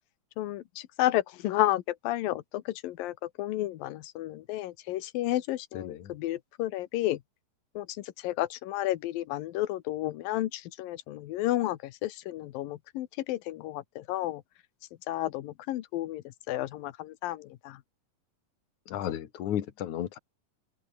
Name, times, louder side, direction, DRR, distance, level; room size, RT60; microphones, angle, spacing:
voice 1, 0.4-2.4 2.8-7.2 7.8-7.9 8.2-14.4 15.1-16.2 16.5-17.8, left 15 dB, 90° left, 2.8 m, -31 dB
voice 2, 5.7-6.1 18.9-20.2, left 10 dB, 60° left, 3.0 m, -33 dB
open air
omnidirectional pair, 4.0 m